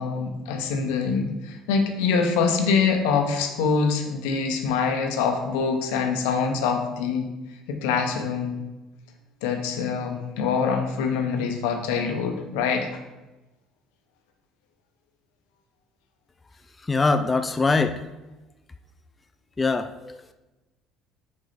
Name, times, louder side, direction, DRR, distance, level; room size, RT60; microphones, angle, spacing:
voice 1, 0.0-7.3 7.7-8.5 9.4-12.9, left 5 dB, 85° left, 4 dB, 0.9 m, -24 dB
voice 2, 16.9-18.0 19.6-20.3, left 3 dB, 20° left, 8 dB, 0.4 m, -23 dB
5.2 x 4.7 x 4.1 m, 1.1 s
supercardioid pair, 85°, 0 cm